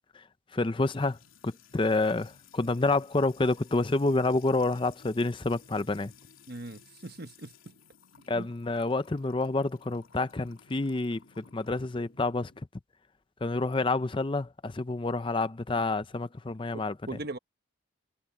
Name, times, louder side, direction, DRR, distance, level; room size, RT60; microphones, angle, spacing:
voice 1, 0.5-1.2 1.4-6.1 8.3-12.5 13.4-17.0, left 2 dB, 25° left, 0.5 m, -28 dB
Music / Water tap faucet / Trickle dribble, 0.8-12.6, left 6 dB, 85° left, 2.9 m, -57 dB
voice 2, 6.5-7.5 8.3-8.5 16.7-17.4, right 2 dB, 50° right, 1.2 m, -40 dB
head